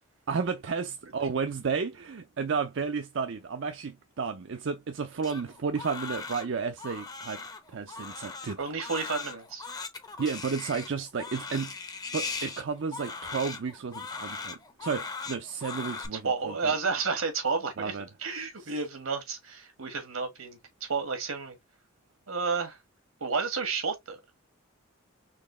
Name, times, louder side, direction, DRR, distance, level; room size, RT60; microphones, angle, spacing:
voice 1, 0.3-8.6 10.2-11.7 12.1-16.7 17.8-18.1 18.6-18.7, right 5 dB, 60° right, 0.5 m, -32 dB
Crying sobbing, 5.2-16.1, left 4 dB, 20° left, 0.6 m, -39 dB
voice 2, 8.6-9.7 16.2-17.9 18.2-21.6 22.3-22.8 23.2-24.2, right 4 dB, 85° right, 1.6 m, -31 dB
4.2 x 3.1 x 3.0 m
head